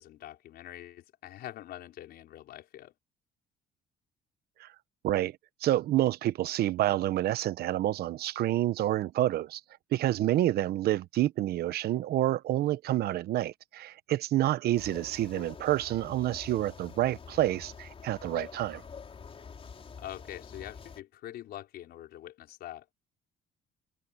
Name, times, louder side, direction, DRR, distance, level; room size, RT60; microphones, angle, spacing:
voice 1, 0.0-2.9 20.0-22.9, left 13 dB, 70° left, 5.1 m, -44 dB
voice 2, 5.0-5.4 5.6-9.6 9.9-18.8, right 14 dB, 70° right, 0.9 m, -28 dB
sound 1, 14.7-21.0, left 6 dB, 35° left, 4.5 m, -47 dB
cardioid pair, 110°, 17 cm